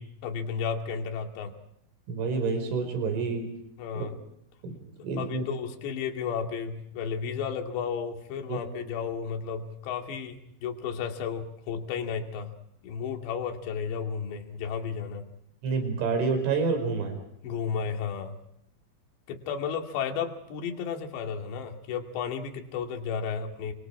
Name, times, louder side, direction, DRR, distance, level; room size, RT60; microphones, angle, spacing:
voice 1, 0.0-1.5 3.8-4.2 5.2-12.5 12.8-15.2 17.4-18.4 19.3-23.7, left 6 dB, 65° left, 3 dB, 4.3 m, -33 dB
voice 2, 2.1-3.5 4.0-4.1 4.6-4.8 5.0-5.5 8.5-8.6 15.6-17.2, right 4 dB, 70° right, 5 dB, 7.3 m, -28 dB
29.5 x 26.0 x 4.8 m, 0.76 s
omnidirectional pair, 5.8 m